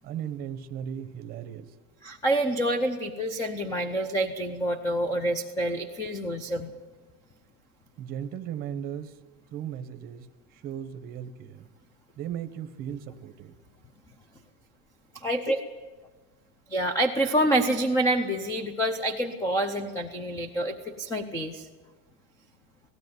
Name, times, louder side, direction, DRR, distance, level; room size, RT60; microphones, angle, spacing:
voice 1, 0.0-1.7 8.0-9.2 9.5-11.7 12.2-13.5, right 9 dB, 25° right, 9 dB, 0.9 m, -37 dB
voice 2, 2.0-6.7 15.1-15.6 16.7-21.7, right 1 dB, 10° left, 8 dB, 0.6 m, -27 dB
18.0 x 16.0 x 9.4 m, 1.3 s
supercardioid pair, 175°, 36 cm